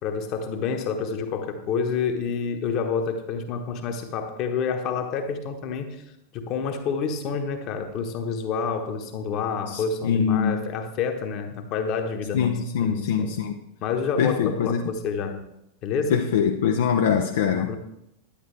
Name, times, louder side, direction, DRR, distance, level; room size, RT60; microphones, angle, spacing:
voice 1, 0.0-6.0 6.3-13.4 13.8-15.5 15.8-16.2 17.5-17.8, left 5 dB, 40° left, 6 dB, 1.2 m, -28 dB
voice 2, 9.7-10.6 12.3-13.6 14.2-14.8 16.1-17.8, left 7 dB, 60° left, 4 dB, 0.5 m, -23 dB
10.0 x 9.7 x 3.3 m, 0.80 s
figure-of-eight pair, 90°, 0 cm